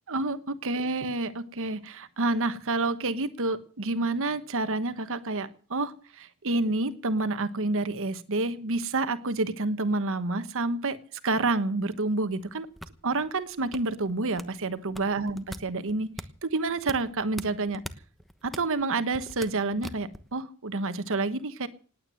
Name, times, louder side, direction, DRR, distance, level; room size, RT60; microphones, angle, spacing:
voice 1, 0.1-11.0 11.2-12.7 13.0-16.1 16.4-17.8 18.4-21.7, right 2 dB, 65° right, 12 dB, 1.2 m, -29 dB
sound 1, 12.3-20.3, equal, ahead, 1.1 m, -43 dB
19.0 x 9.4 x 7.7 m, 0.41 s
head